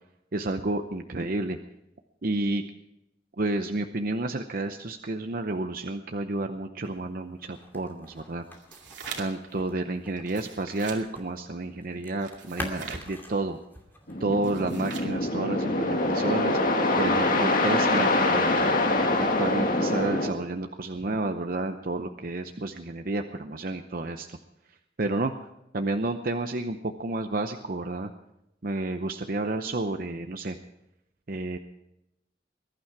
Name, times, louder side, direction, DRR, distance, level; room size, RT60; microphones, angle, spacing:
voice 1, 0.3-1.6 2.2-2.6 3.4-8.4 9.2-13.6 14.2-18.7 19.2-24.4 25.0-25.3 25.7-28.1 28.6-30.6 31.3-31.6, right 2 dB, 50° right, 6 dB, 0.8 m, -30 dB
sound 1, 6.8-11.3 11.6-14.3, left 1 dB, 10° left, 2.6 m, -44 dB
sound 2, 8.5-9.5 10.2-11.0 12.2-13.1 14.3-15.2, right 6 dB, 80° right, 2.6 m, -42 dB
sound 3, 14.1-20.3, left 2 dB, 50° left, 2.1 m, -24 dB
21.0 x 11.5 x 4.7 m, 0.87 s
head